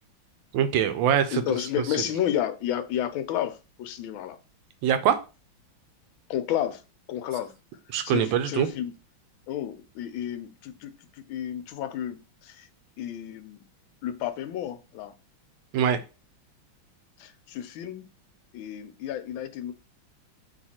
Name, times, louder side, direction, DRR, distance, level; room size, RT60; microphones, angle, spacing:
voice 1, 0.5-1.3 4.8-5.2 7.9-8.7 15.7-16.0, right 9 dB, 75° right, 10 dB, 1.3 m, -23 dB
voice 2, 1.3-4.4 6.3-6.8 7.1-7.5 8.0-8.9 9.5-12.7 13.0-13.6 14.0-15.2 17.2-18.1 18.5-19.7, left 11 dB, 80° left, 10 dB, 1.4 m, -31 dB
3.9 x 2.9 x 4.2 m, 0.31 s
omnidirectional pair, 2.2 m